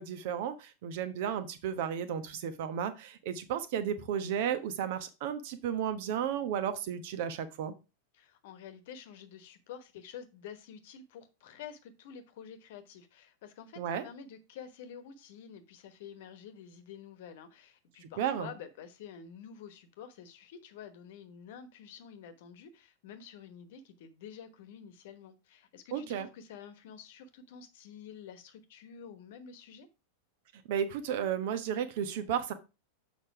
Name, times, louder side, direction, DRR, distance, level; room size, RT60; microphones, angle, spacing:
voice 1, 0.0-7.7 13.8-14.0 18.0-18.5 25.9-26.3 30.7-32.5, right 8 dB, 50° right, 11 dB, 1.1 m, -33 dB
voice 2, 8.1-29.9, left 7 dB, 55° left, 10 dB, 1.1 m, -49 dB
7.2 x 5.2 x 4.8 m, 0.29 s
figure-of-eight pair, 90°, 0 cm